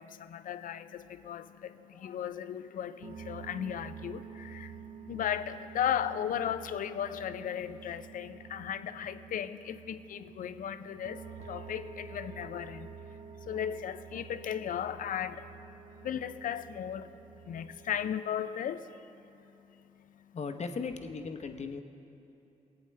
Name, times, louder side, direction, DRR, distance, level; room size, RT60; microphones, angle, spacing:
voice 1, 0.0-20.4, left 9 dB, 65° left, 0.5 m, -36 dB
sound 1, 3.0-18.2, right 7 dB, 50° right, 0.5 m, -49 dB
voice 2, 20.3-21.8, left 4 dB, 50° left, 0.9 m, -37 dB
19.0 x 8.2 x 3.2 m
supercardioid pair, 45°, 15 cm